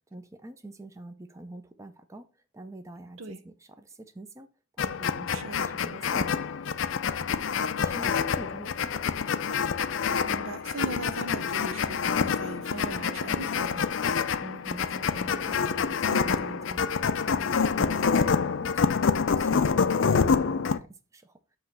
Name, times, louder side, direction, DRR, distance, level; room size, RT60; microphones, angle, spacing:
voice 1, 0.1-2.2 2.5-4.5 4.8-6.4 7.8-8.9 14.4-16.9 17.3-18.9 19.3-20.9 21.1-21.4, right 2 dB, 15° right, 0.5 m, -44 dB
sound 1, 4.8-20.8, left 6 dB, 65° left, 0.5 m, -27 dB
voice 2, 5.3-5.7 10.2-13.8, right 2 dB, 75° right, 0.9 m, -39 dB
7.4 x 3.1 x 5.9 m
head